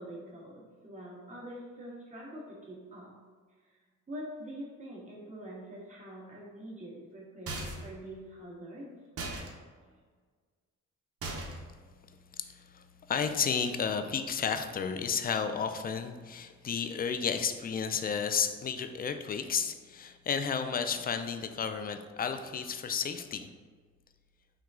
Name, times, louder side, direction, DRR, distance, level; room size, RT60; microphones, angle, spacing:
voice 1, 0.0-3.2 3.6-3.8 4.1-8.9 9.8-10.0, equal, 25° right, -5 dB, 1.5 m, -45 dB
sound 1, 7.5-8.0 9.2-9.5 11.2-11.7, right 2 dB, 50° right, 0.9 m, -38 dB
voice 2, 12.4-23.5, left 6 dB, 30° left, 8 dB, 0.4 m, -32 dB
6.1 x 2.3 x 3.6 m, 1.5 s
cardioid pair, 90°, 30 cm